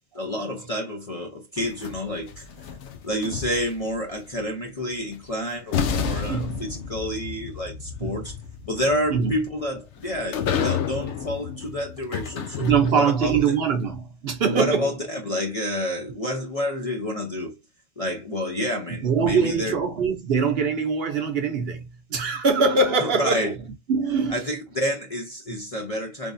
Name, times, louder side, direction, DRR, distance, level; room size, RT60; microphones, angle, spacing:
voice 1, 0.1-2.5 3.0-8.3 8.7-13.4 14.5-17.6 18.0-19.7 23.0-23.5 24.3-26.3, left 1 dB, 35° left, 0.6 m, -29 dB
sound 1, 1.6-3.9 5.2-5.3 5.7-13.2, left 7 dB, 70° left, 0.9 m, -31 dB
voice 2, 6.3-6.7 8.0-8.3 9.1-9.3 12.6-14.9 19.0-23.5 23.9-24.5 25.5-25.6, right 5 dB, 60° right, 0.8 m, -23 dB
3.5 x 3.2 x 2.5 m
omnidirectional pair, 1.3 m